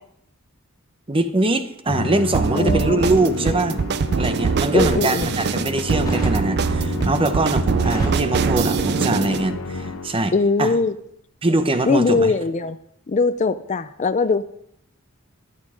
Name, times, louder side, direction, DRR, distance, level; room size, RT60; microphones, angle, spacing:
voice 1, 1.1-3.8 4.2-10.7 11.4-12.3, right 2 dB, 25° right, 9 dB, 0.9 m, -22 dB
Musical instrument, 1.9-10.4, left 3 dB, 75° left, 0.9 m, -30 dB
sound 1, 2.3-9.5, right 5 dB, 50° right, 0.4 m, -23 dB
voice 2, 2.5-3.5 4.7-5.3 10.3-10.9 11.9-12.8 13.1-14.4, left 4 dB, 35° left, 13 dB, 0.4 m, -21 dB
Crackle, 3.1-4.2 4.8-5.4 6.0-6.4 6.8-7.3 7.6-9.5 9.8-10.0, equal, 15° left, 2.1 m, -34 dB
12.0 x 12.0 x 5.0 m, 0.72 s
head